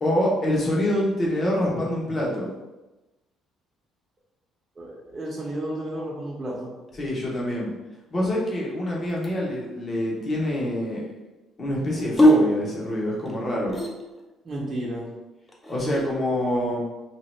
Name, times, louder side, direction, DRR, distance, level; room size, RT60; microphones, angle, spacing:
voice 1, 0.0-2.5 7.0-7.7 8.1-11.0 11.6-13.8 15.7-16.8, left 1 dB, 45° left, -4 dB, 1.0 m, -25 dB
voice 2, 4.8-6.7 14.4-15.1, right 1 dB, 35° right, -5 dB, 0.7 m, -32 dB
sound 1, 6.9-7.7 8.6-9.7 11.9-14.3 15.5-16.1, equal, 20° left, 0.6 m, -23 dB
2.8 x 2.0 x 3.2 m, 1.1 s
hypercardioid pair, 60°, 0 cm